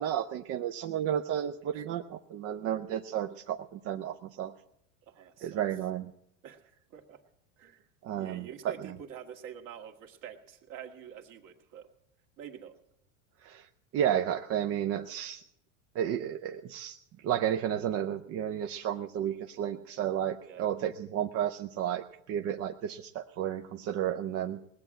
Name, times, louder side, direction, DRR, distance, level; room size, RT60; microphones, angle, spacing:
voice 1, 0.0-4.5 5.4-6.1 8.0-8.5 13.4-13.7 13.9-15.4 16.0-17.0 17.2-24.6, right 10 dB, 40° right, 7 dB, 0.5 m, -32 dB
voice 2, 5.1-5.6 6.4-6.7 6.9-7.2 7.6-11.9 12.4-12.8 20.4-20.7, right 8 dB, 55° right, 4 dB, 1.8 m, -46 dB
19.5 x 8.0 x 7.5 m, 0.80 s
supercardioid pair, 120°, 39 cm